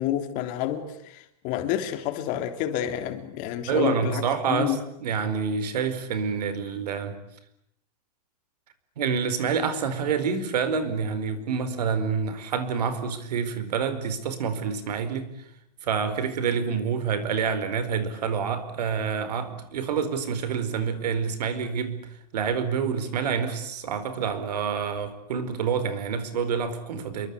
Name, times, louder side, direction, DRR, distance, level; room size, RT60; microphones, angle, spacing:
voice 1, 0.0-4.2 4.5-4.8, left 11 dB, 40° left, 3.4 m, -29 dB
voice 2, 3.7-7.2 9.0-15.3 15.8-22.1 22.3-27.3, right 6 dB, 80° right, 4.8 m, -27 dB
28.0 x 23.5 x 8.4 m
supercardioid pair, 145°, 20 cm